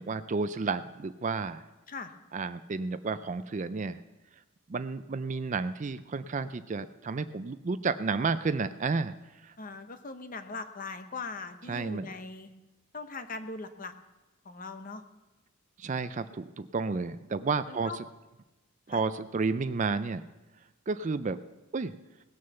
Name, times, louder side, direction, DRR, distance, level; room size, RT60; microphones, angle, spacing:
voice 1, 0.0-1.6 2.3-4.0 4.7-9.1 9.4-9.5 11.7-12.1 15.8-18.0 18.9-20.2 20.9-21.4 21.7-21.9, right 4 dB, 35° right, 13 dB, 0.4 m, -31 dB
voice 2, 9.6-12.5 12.9-13.9 14.4-15.0 17.7-18.0 18.9-19.0, left 4 dB, 40° left, 9 dB, 0.9 m, -40 dB
19.0 x 6.4 x 6.9 m, 1.1 s
head